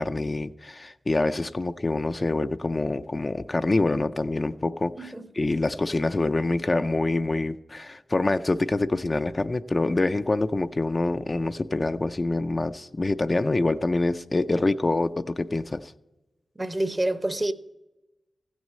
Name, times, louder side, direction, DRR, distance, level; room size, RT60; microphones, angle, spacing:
voice 1, 0.0-15.9, left 2 dB, 35° left, 0.4 m, -26 dB
voice 2, 4.9-5.3 16.6-17.5, right 1 dB, 20° right, 0.7 m, -27 dB
15.5 x 6.2 x 7.5 m
cardioid pair, 65°, 0 cm